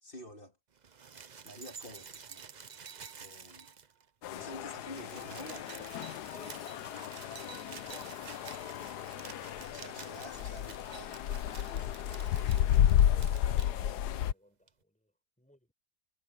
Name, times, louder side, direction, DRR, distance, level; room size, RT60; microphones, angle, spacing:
voice 1, 0.0-0.5 1.4-2.4 3.2-3.7 4.3-5.7 9.6-11.2 11.4-11.9 12.2-12.6, left 1 dB, 35° left, 3.6 m, -49 dB
sound 1, 0.8-4.1 4.4-4.5 4.7-13.7 14.7-14.8, right 6 dB, 40° right, 0.6 m, -50 dB
sound 2, 4.2-14.3, left 11 dB, 80° left, 1.3 m, -32 dB
voice 2, 6.3-8.7 13.1-15.1 15.4-15.7, equal, 5° left, 6.4 m, -58 dB
omnidirectional pair, 1.7 m